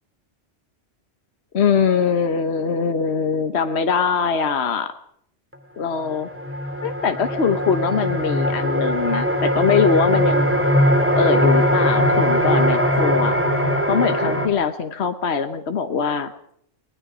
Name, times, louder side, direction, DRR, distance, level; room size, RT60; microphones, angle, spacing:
voice 1, 1.5-4.9 5.8-6.3 6.8-10.6 11.2-13.3 13.9-16.3, left 6 dB, 65° left, 8 dB, 1.4 m, -22 dB
sound 1, 5.5-5.6 6.0-14.5, equal, 10° right, 2.5 m, -20 dB
20.5 x 20.5 x 6.2 m, 0.68 s
omnidirectional pair, 1.2 m